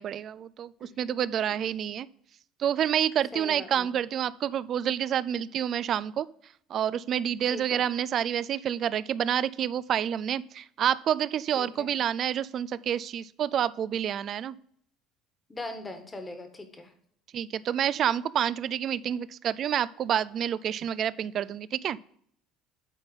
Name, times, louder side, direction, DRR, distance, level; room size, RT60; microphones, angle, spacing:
voice 1, 0.0-2.1 2.6-6.3 6.7-14.5 17.3-22.0, right 9 dB, 50° right, 18 dB, 0.4 m, -28 dB
voice 2, 3.3-3.9 7.5-7.8 11.6-11.9 15.5-16.9, left 2 dB, 20° left, 7 dB, 1.6 m, -40 dB
9.1 x 4.0 x 5.3 m, 0.66 s
hypercardioid pair, 75°, 0 cm